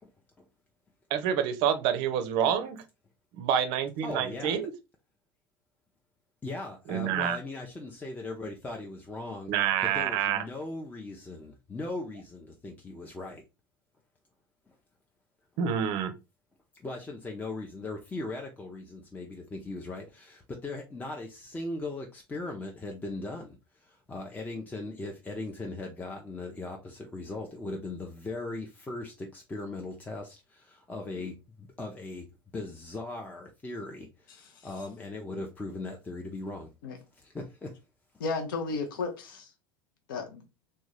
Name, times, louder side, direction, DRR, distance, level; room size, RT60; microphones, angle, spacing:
voice 1, 1.1-2.8 3.3-4.7 6.9-7.4 9.5-10.4 15.6-16.1, right 9 dB, 50° right, 0.5 m, -27 dB
voice 2, 4.0-4.6 6.4-9.5 9.9-13.4 16.8-23.6 23.9-31.3 31.8-32.2 32.5-34.1 34.6-36.7 37.2-37.7, left 2 dB, 15° left, 0.5 m, -38 dB
voice 3, 34.4-34.9 36.8-37.0 38.2-39.5 40.1-40.4, left 4 dB, 65° left, 0.6 m, -34 dB
3.5 x 2.2 x 3.1 m
figure-of-eight pair, 70°, 12 cm